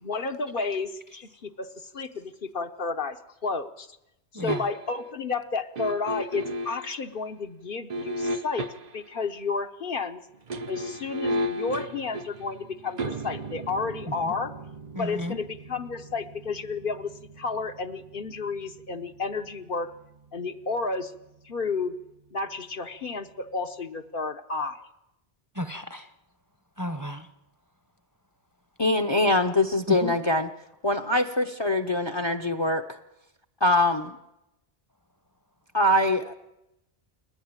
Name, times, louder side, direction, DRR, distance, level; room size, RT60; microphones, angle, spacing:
voice 1, 0.0-3.2 3.4-4.0 4.3-10.2 10.7-14.5 15.0-19.9 20.3-21.1 21.4-22.0 22.3-24.8, left 4 dB, 60° left, 7 dB, 1.1 m, -32 dB
voice 2, 4.3-4.7 14.1-14.3 14.9-15.4 25.5-26.1 26.8-27.3 29.9-30.1, left 1 dB, 20° right, 8 dB, 0.9 m, -33 dB
sound 1, 4.5-5.0 5.7-6.9 7.9-9.1 10.3-21.3 21.6-21.7, right 1 dB, 45° right, 0.9 m, -35 dB
voice 3, 28.8-30.5 30.8-32.8 33.6-34.1 35.7-36.3, left 1 dB, 30° left, 8 dB, 0.8 m, -23 dB
29.0 x 10.0 x 8.9 m, 0.91 s
omnidirectional pair, 1.1 m